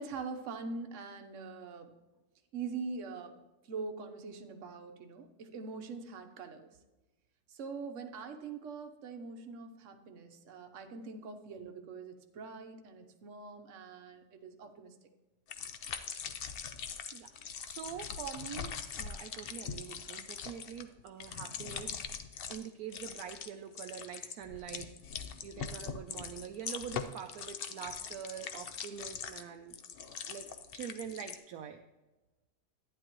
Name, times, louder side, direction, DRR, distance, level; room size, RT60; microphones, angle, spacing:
voice 1, 0.0-1.9 2.5-3.3 3.7-6.7 7.5-14.9, right 4 dB, 55° right, 6 dB, 1.1 m, -43 dB
sound 1, 15.5-22.7 22.9-23.5 23.7-31.4, left 7 dB, 65° left, 0.5 m, -42 dB
voice 2, 17.6-22.0 22.5-24.9 25.4-29.8 30.3-31.8, right 8 dB, 75° right, 6 dB, 1.0 m, -45 dB
11.5 x 9.7 x 3.0 m, 1.1 s
omnidirectional pair, 1.7 m